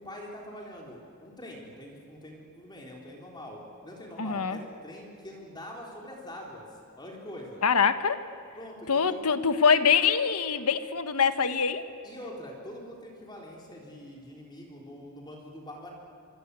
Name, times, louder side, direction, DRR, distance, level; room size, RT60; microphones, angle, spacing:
voice 1, 0.0-6.7 7.0-7.7 8.6-9.2 12.0-15.9, left 1 dB, 20° left, -1 dB, 4.0 m, -44 dB
voice 2, 4.2-4.6 7.6-8.2 8.9-11.8, left 6 dB, 80° left, 10 dB, 1.4 m, -24 dB
26.5 x 24.5 x 8.4 m, 2.5 s
head